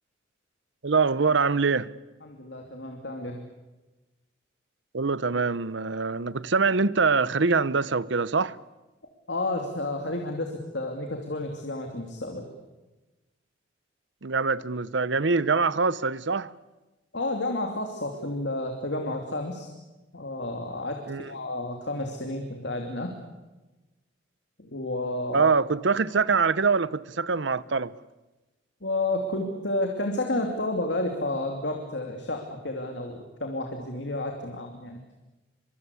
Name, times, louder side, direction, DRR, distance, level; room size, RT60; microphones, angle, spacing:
voice 1, 0.8-1.9 4.9-8.6 14.2-16.5 21.1-21.3 25.3-27.9, right 4 dB, 70° right, 0.8 m, -24 dB
voice 2, 2.2-3.5 9.3-12.4 17.1-19.7 20.1-23.2 24.6-25.5 28.8-35.0, left 2 dB, 65° left, 2.8 m, -31 dB
24.5 x 24.0 x 8.3 m
head